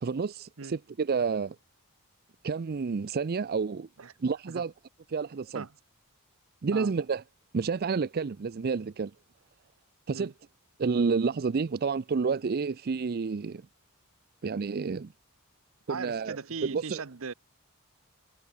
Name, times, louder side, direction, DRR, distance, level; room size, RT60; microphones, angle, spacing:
voice 1, 0.0-1.6 2.4-3.9 4.2-4.7 5.1-5.6 6.6-7.2 7.5-9.1 10.1-10.3 10.8-13.6 14.4-15.1 15.9-16.4 16.6-17.0, right 5 dB, 45° right, 0.4 m, -29 dB
voice 2, 15.9-17.3, right 5 dB, 65° right, 0.9 m, -38 dB
head